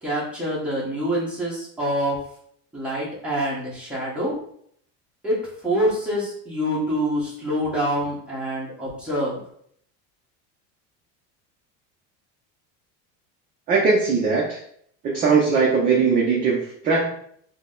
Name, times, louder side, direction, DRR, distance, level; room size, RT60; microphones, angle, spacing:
voice 1, 0.0-2.2 2.7-4.3 5.2-9.4, equal, 5° right, -7 dB, 1.1 m, -26 dB
voice 2, 13.7-14.6 15.0-17.1, right 5 dB, 25° right, -3 dB, 0.5 m, -20 dB
3.8 x 2.2 x 3.7 m, 0.66 s
cardioid pair, 155°, 37 cm